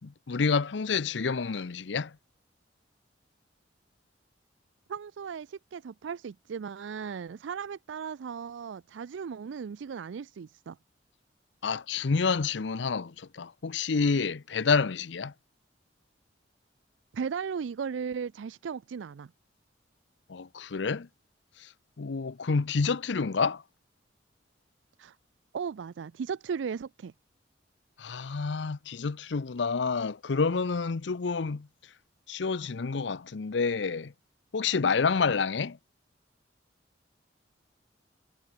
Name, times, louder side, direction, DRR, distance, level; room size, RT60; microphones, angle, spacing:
voice 1, 0.0-2.1 11.6-15.3 20.3-21.1 22.0-23.6 28.0-31.7 32.3-34.1 34.5-35.8, left 5 dB, 70° left, 0.6 m, -28 dB
voice 2, 4.9-10.8 17.1-19.3 25.0-25.2 25.5-27.1, right 6 dB, 85° right, 0.4 m, -36 dB
head